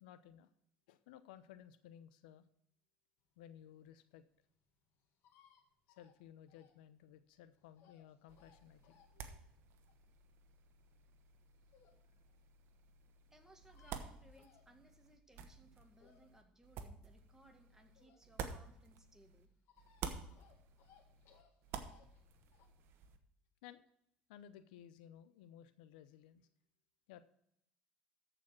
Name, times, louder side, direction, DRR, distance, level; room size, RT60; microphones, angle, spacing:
voice 1, 0.0-0.5 0.9-2.5 3.4-4.2 5.9-9.4 23.6-23.9 24.3-26.5 27.1-27.2, left 10 dB, 80° left, 13 dB, 0.7 m, -58 dB
sound 1, 3.4-12.1 12.5-12.6 12.8-12.9 13.1-13.2 13.4-15.2 15.6-18.6 18.9-22.7, left 7 dB, 60° left, 1.8 m, -69 dB
sound 2, 8.3-19.5 19.8-23.2, right 6 dB, 60° right, 1.2 m, -51 dB
voice 2, 13.3-19.5, right 1 dB, 10° right, 5 dB, 1.9 m, -65 dB
14.0 x 5.1 x 6.0 m, 0.72 s
hypercardioid pair, 70°, 5 cm